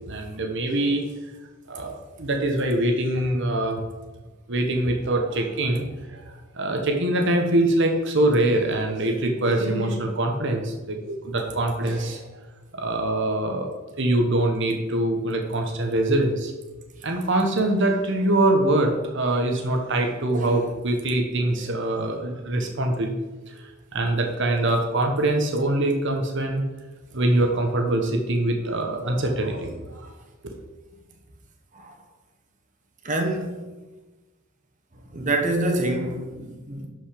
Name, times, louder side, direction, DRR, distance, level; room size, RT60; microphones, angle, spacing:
voice 1, 0.1-1.0 1.7-3.8 4.5-12.2 12.7-13.7 13.9-16.5 17.0-23.2 23.5-26.6 27.1-30.0 30.4-30.6, right 1 dB, 60° right, 1.2 m, -24 dB
voice 2, 20.3-20.7 31.7-31.9 33.0-33.6 35.1-36.9, right 2 dB, 40° right, 1.3 m, -27 dB
11.5 x 5.5 x 5.1 m
head